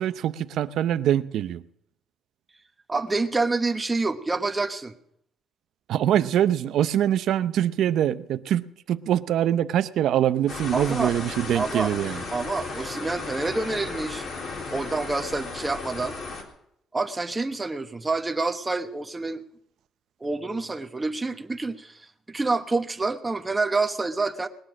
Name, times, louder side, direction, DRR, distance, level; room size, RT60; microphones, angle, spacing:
voice 1, 0.0-1.6 5.9-12.2, right 11 dB, 70° right, 0.6 m, -24 dB
voice 2, 2.9-4.9 10.7-11.1 11.5-11.9 12.3-14.3 14.7-16.2 16.9-19.4 20.2-24.5, right 3 dB, 15° right, 1.1 m, -27 dB
sound 1, 10.5-16.4, left 3 dB, 55° left, 3.3 m, -35 dB
20.0 x 9.9 x 6.2 m
cardioid pair, 120°, 0 cm